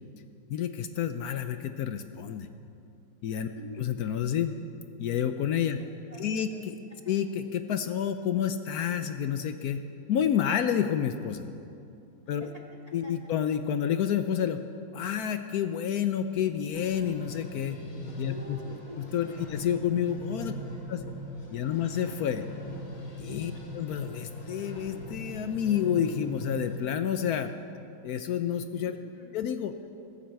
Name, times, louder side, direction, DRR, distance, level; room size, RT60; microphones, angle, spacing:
voice 1, 0.5-2.5 3.2-3.5 3.8-4.6 5.0-5.8 6.2-6.5 7.1-9.8 10.1-11.5 12.3-12.5 12.9-14.6 14.9-17.8 18.2-18.6 19.1-20.5 20.9-21.0 21.5-22.4 23.2-27.5 28.0-29.0 29.3-29.7, left 9 dB, 75° left, 9 dB, 0.8 m, -29 dB
voice 2, 3.5-3.9 5.8-7.2 12.4-13.3 18.2-19.1 19.4-19.5 20.7-20.8 23.5-23.7 29.0-29.4, equal, 20° left, -1 dB, 1.5 m, -47 dB
sound 1, 16.7-26.8, equal, 55° left, 2.7 m, -40 dB
14.5 x 11.0 x 7.5 m, 2.7 s
omnidirectional pair, 2.3 m